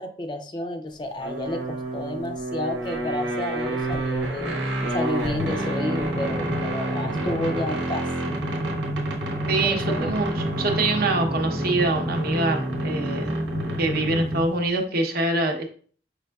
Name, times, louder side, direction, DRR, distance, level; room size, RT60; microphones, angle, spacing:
voice 1, 0.0-4.6 4.9-8.1 9.6-10.1, left 1 dB, 25° left, 6 dB, 0.4 m, -31 dB
sound 1, 1.2-14.6, right 1 dB, 90° right, 1.1 m, -28 dB
voice 2, 9.5-13.4 13.8-15.7, right 2 dB, 60° right, 3 dB, 0.8 m, -24 dB
5.4 x 3.5 x 2.3 m, 0.44 s
head